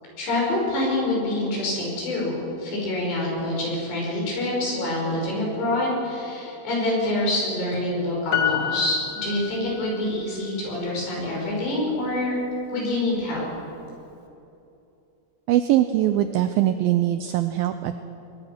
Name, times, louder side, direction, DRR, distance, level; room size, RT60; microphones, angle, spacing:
voice 1, 0.2-12.3 12.7-13.5, left 1 dB, 70° left, -3 dB, 7.8 m, -26 dB
Piano, 8.3-10.1 10.4-10.5, left 9 dB, 50° left, 1.8 m, -28 dB
voice 2, 15.5-18.0, right 13 dB, 85° right, 9 dB, 2.1 m, -22 dB
22.0 x 21.5 x 6.1 m, 2.8 s
omnidirectional pair, 5.0 m